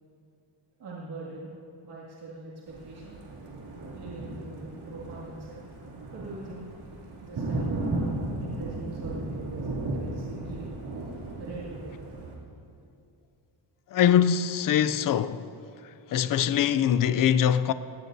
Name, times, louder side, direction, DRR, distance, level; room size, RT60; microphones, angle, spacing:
voice 1, 0.8-1.5 1.8-3.2 3.9-5.6 6.1-6.7 7.2-10.7 11.4-11.9, right 2 dB, 50° right, 2.3 m, -42 dB
Thunder, 2.7-12.3, right 2 dB, 80° right, 2.8 m, -35 dB
voice 2, 13.9-15.5 16.1-17.7, left 9 dB, 45° left, 0.4 m, -23 dB
19.0 x 17.0 x 2.7 m
wide cardioid pair, 150°, 50 cm